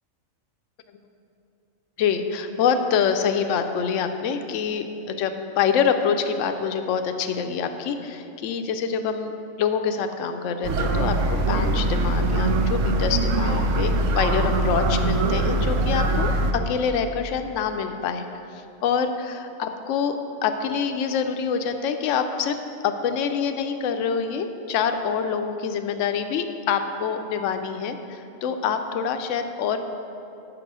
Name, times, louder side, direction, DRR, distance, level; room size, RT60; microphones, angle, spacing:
voice 1, 2.0-9.3 9.6-18.2 18.5-20.2 20.4-22.6 22.8-29.8, left 6 dB, 70° left, 7 dB, 0.9 m, -26 dB
sound 1, 10.6-16.5, right 2 dB, 70° right, 1.1 m, -22 dB
7.9 x 6.0 x 6.1 m, 2.9 s
omnidirectional pair, 1.4 m